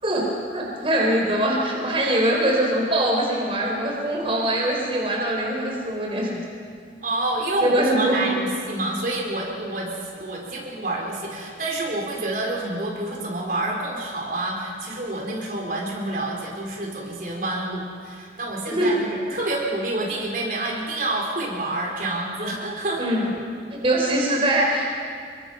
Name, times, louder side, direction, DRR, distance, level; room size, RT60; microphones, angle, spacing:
voice 1, 0.5-6.4 7.6-8.4 18.7-19.0 23.0-23.3 23.7-24.9, right 1 dB, 30° right, -1 dB, 4.0 m, -22 dB
voice 2, 7.0-9.9 10.1-23.0, right 2 dB, 50° right, -2 dB, 4.2 m, -28 dB
28.0 x 23.5 x 5.5 m, 2.2 s
head